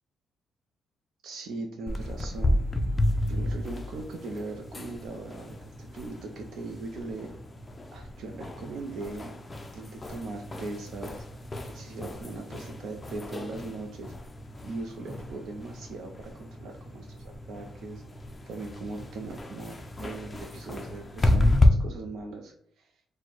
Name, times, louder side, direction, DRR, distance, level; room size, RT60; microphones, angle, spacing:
voice 1, 1.2-2.6 3.3-7.3 7.9-9.4 9.7-11.3 11.6-14.1 14.6-18.0 18.5-22.9, right 3 dB, 65° right, 2 dB, 0.5 m, -39 dB
sound 1, 1.9-21.7, left 1 dB, 20° left, 0.4 m, -32 dB
4.3 x 2.1 x 4.4 m, 0.68 s
cardioid pair, 155°, 0 cm